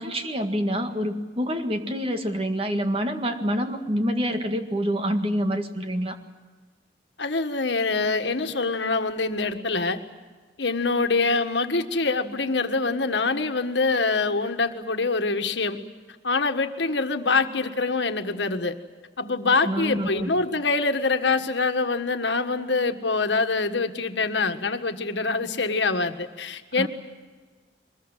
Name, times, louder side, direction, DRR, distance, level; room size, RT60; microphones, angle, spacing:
voice 1, 0.0-6.2 19.7-20.3 26.8-26.9, equal, 30° right, 6 dB, 1.9 m, -27 dB
voice 2, 7.2-10.0 10.6-15.8 16.2-18.7 19.2-26.9, left 3 dB, 75° left, 7 dB, 1.6 m, -25 dB
23.5 x 21.5 x 9.2 m, 1.4 s
head